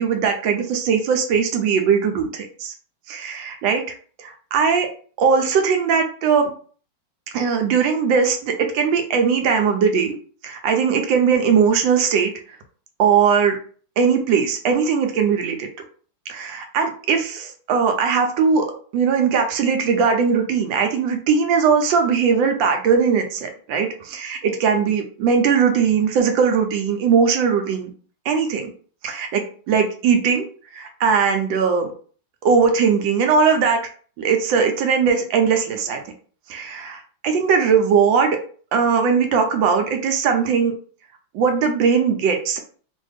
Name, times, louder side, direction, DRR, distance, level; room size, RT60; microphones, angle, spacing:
voice 1, 0.0-2.7 3.1-3.8 4.2-4.9 5.2-6.5 7.3-10.1 10.4-12.3 13.0-13.6 14.0-15.7 16.3-18.7 18.9-27.9 28.3-28.7 29.0-30.5 30.7-31.9 32.4-33.8 34.2-36.0 36.5-38.4 38.7-40.7 41.3-42.6, right 6 dB, 80° right, 5 dB, 1.3 m, -19 dB
3.1 x 2.5 x 3.3 m, 0.43 s
omnidirectional pair, 2.1 m